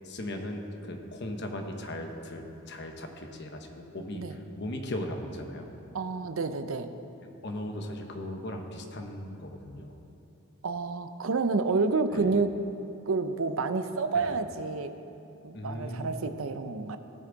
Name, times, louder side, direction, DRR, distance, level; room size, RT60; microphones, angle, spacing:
voice 1, 0.0-5.8 7.4-9.9 12.1-12.3 14.1-14.3 15.5-16.2, left 1 dB, 50° left, 4 dB, 1.0 m, -38 dB
voice 2, 5.9-6.9 10.6-12.6 13.1-14.9 15.4-17.0, right 4 dB, 70° right, 9 dB, 0.6 m, -29 dB
18.0 x 7.0 x 4.0 m, 2.9 s
head